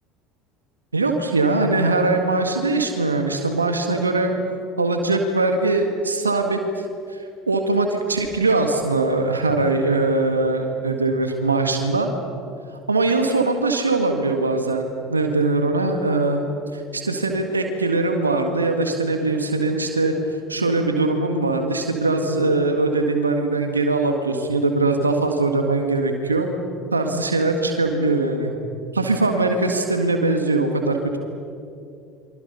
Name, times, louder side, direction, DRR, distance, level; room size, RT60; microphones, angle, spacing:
voice 1, 0.9-4.3 4.8-6.6 7.5-12.1 12.9-16.4 16.7-20.1 20.5-26.5 26.9-28.5 28.9-31.2, right 3 dB, 90° right, 5 dB, 1.9 m, -21 dB
28.5 x 24.5 x 5.7 m, 2.5 s
figure-of-eight pair, 65°, 0 cm